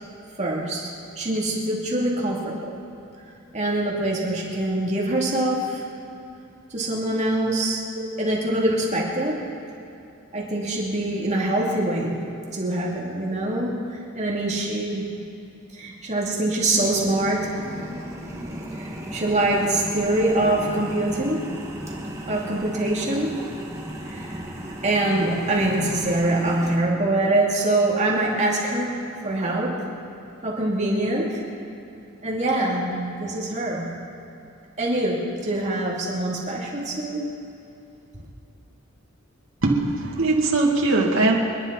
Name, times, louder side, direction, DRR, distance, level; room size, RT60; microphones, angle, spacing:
voice 1, 0.4-0.9 1.2-2.7 3.5-5.8 6.7-7.8 8.2-9.5 10.3-12.2 12.5-15.0 15.7-17.5 18.7-21.4 22.3-23.5 24.0-24.3 24.8-29.9 30.4-31.4 32.2-33.9 34.8-37.3, right 1 dB, 35° right, -4 dB, 2.7 m, -24 dB
sound 1, 16.7-26.8, right 1 dB, 15° right, 1.9 m, -35 dB
voice 2, 39.6-41.4, right 2 dB, 70° right, -2 dB, 2.5 m, -21 dB
28.0 x 11.0 x 4.2 m, 2.7 s
head